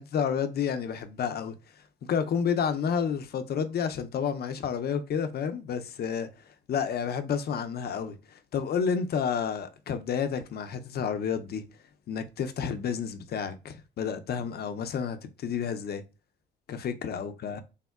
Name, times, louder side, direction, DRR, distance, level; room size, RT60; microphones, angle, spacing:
voice 1, 0.0-1.5 2.1-6.3 6.7-11.6 12.1-16.0 16.7-17.6, left 7 dB, 55° left, 0.5 m, -30 dB
3.5 x 2.1 x 2.3 m
cardioid pair, 90°, 20 cm